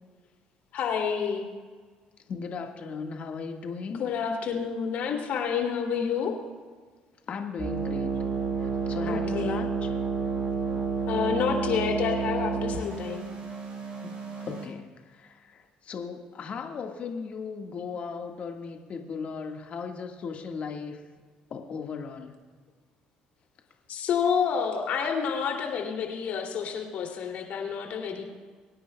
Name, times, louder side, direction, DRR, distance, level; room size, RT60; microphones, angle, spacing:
voice 1, 0.7-1.4 4.0-6.3 9.1-9.6 11.1-13.3 23.9-28.2, left 6 dB, 65° left, 1 dB, 2.7 m, -29 dB
voice 2, 2.3-4.0 7.3-8.1 8.6-9.9 14.0-14.1 14.4-21.0 21.5-22.4, left 5 dB, 50° left, 3 dB, 1.6 m, -37 dB
sound 1, 7.6-14.6, right 5 dB, 45° right, 4.2 m, -30 dB
24.5 x 9.8 x 2.3 m, 1.5 s
supercardioid pair, 75°, 3 cm